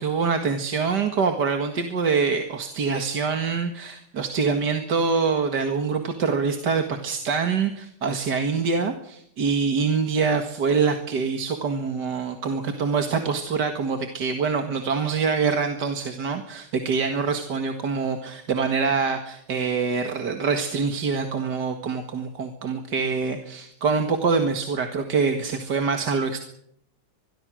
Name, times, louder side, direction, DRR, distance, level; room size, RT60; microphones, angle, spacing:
voice 1, 0.0-26.4, right 5 dB, 65° right, 5 dB, 2.4 m, -25 dB
25.0 x 21.5 x 6.3 m, 0.73 s
omnidirectional pair, 1.9 m